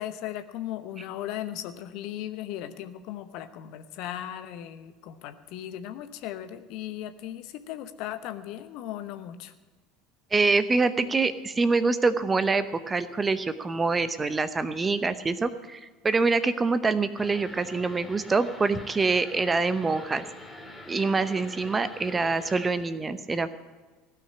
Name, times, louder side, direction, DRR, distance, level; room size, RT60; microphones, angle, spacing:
voice 1, 0.0-9.5, left 12 dB, 55° left, 10 dB, 0.9 m, -37 dB
voice 2, 10.3-20.2 20.9-23.5, right 4 dB, 20° right, 13 dB, 0.8 m, -25 dB
sound 1, 17.2-22.7, left 2 dB, 10° left, 2.1 m, -45 dB
16.0 x 6.0 x 9.8 m, 1.3 s
figure-of-eight pair, 70°, 0 cm